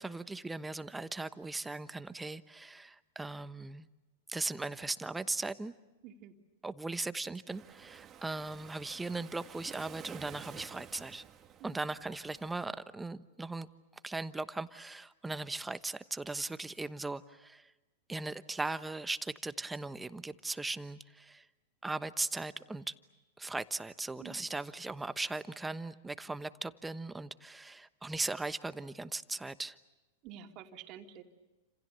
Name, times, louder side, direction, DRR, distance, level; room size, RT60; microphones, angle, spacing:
voice 1, 0.0-3.9 4.3-5.7 6.6-11.2 11.6-13.7 14.0-17.7 18.1-21.5 21.8-22.9 23.4-29.8, right 3 dB, 10° right, 12 dB, 1.1 m, -38 dB
voice 2, 6.0-6.3 11.6-11.7 24.2-24.4 30.2-31.2, right 9 dB, 45° right, 4 dB, 3.0 m, -49 dB
Waves surf, 7.5-12.6, right 9 dB, 30° right, 2.0 m, -52 dB
30.0 x 27.5 x 6.9 m, 1.1 s
hypercardioid pair, 110°, 0 cm